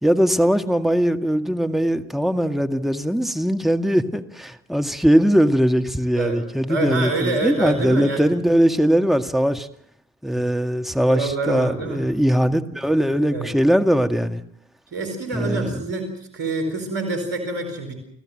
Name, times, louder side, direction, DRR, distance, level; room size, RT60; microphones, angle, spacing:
voice 1, 0.0-9.7 10.2-14.4 15.3-15.8, equal, ahead, 6 dB, 2.1 m, -20 dB
voice 2, 6.7-8.2 10.3-10.4 11.1-12.0 13.3-13.5 14.9-16.1 16.3-17.9, right 2 dB, 90° right, 6 dB, 4.7 m, -26 dB
30.0 x 14.5 x 7.9 m, 0.71 s
hypercardioid pair, 45°, 35 cm